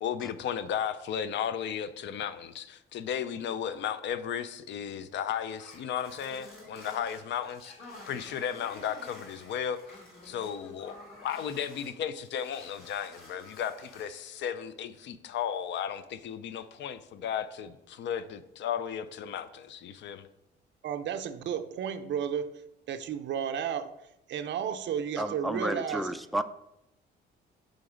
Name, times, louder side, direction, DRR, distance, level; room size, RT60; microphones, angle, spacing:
voice 1, 0.0-20.3, left 8 dB, 65° left, 13 dB, 0.5 m, -35 dB
sound 1, 5.2-12.0 12.3-14.2, left 2 dB, 50° left, 1.8 m, -50 dB
voice 2, 20.8-22.5 22.9-23.9 24.3-26.1, right 8 dB, 65° right, 8 dB, 0.5 m, -32 dB
voice 3, 25.2-26.4, right 1 dB, ahead, 12 dB, 0.3 m, -31 dB
5.1 x 3.9 x 4.9 m, 0.83 s
cardioid pair, 90°, 20 cm